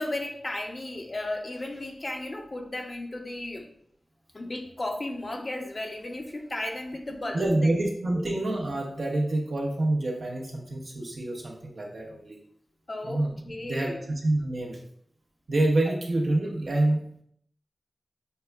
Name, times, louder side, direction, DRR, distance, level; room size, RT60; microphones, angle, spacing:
voice 1, 0.0-3.6 4.3-7.7 8.1-8.3 12.9-14.0 15.9-16.0, left 1 dB, 45° left, 2 dB, 0.7 m, -34 dB
voice 2, 7.3-12.4 13.0-14.8 15.5-17.2, right 1 dB, 75° right, -1 dB, 0.9 m, -27 dB
6.5 x 2.3 x 2.3 m, 0.68 s
cardioid pair, 50°, 0 cm